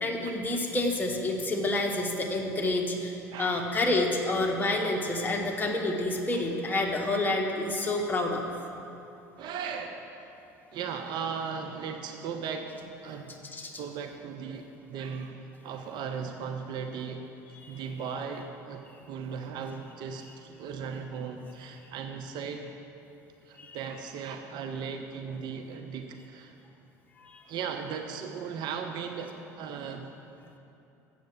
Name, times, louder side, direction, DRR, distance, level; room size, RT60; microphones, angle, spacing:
voice 1, 0.0-8.5 13.5-13.8 17.5-17.7 23.6-23.8 27.2-27.4, left 2 dB, 20° left, 0 dB, 1.4 m, -29 dB
voice 2, 3.3-3.7 6.3-6.4 9.4-10.0 10.7-12.7 13.0-13.3 13.8-15.4 15.6-17.2 17.7-22.6 23.5-26.5 27.5-30.1, right 6 dB, 55° right, 5 dB, 0.7 m, -37 dB
7.8 x 7.7 x 7.3 m, 2.8 s
hypercardioid pair, 65°, 9 cm